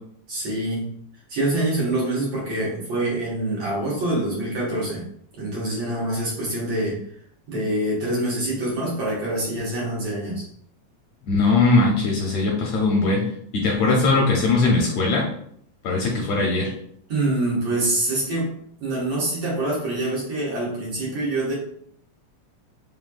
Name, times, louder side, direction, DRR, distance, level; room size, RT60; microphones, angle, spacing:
voice 1, 0.3-0.8 1.3-5.0 5.4-7.0 7.5-10.5 17.1-18.5 18.8-21.5, right 1 dB, 60° right, -6 dB, 2.0 m, -25 dB
voice 2, 11.3-13.2 13.5-15.3 15.8-16.7, left 3 dB, 75° left, -1 dB, 1.6 m, -20 dB
4.9 x 3.2 x 2.2 m, 0.65 s
omnidirectional pair, 3.5 m